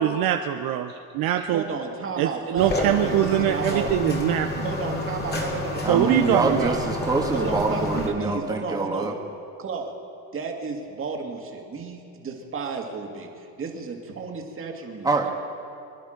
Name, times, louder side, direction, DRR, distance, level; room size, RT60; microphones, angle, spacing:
voice 1, 0.0-1.6 2.2-4.6 5.9-6.8, right 11 dB, 55° right, 6 dB, 0.7 m, -23 dB
voice 2, 1.5-4.2 4.6-6.8 7.3-9.1 9.6-9.9 10.3-15.3, right 4 dB, 30° right, 2 dB, 2.2 m, -33 dB
sound 1, 2.6-8.1, left 1 dB, 25° left, 2.2 m, -29 dB
voice 3, 5.8-9.1 15.0-15.3, right 3 dB, 10° right, 0 dB, 1.6 m, -25 dB
25.5 x 11.0 x 5.1 m, 2.5 s
cardioid pair, 130°, 42 cm